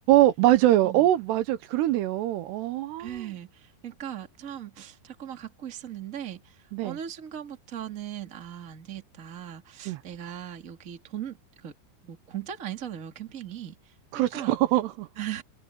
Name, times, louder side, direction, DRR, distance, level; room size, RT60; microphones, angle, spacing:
voice 1, 0.1-3.3 6.7-7.0 9.9-10.0 14.1-15.1, right 14 dB, 80° right, 3.0 m, -23 dB
voice 2, 3.0-11.7 12.0-14.5 15.2-15.4, right 10 dB, 25° right, 1.9 m, -39 dB
omnidirectional pair, 4.9 m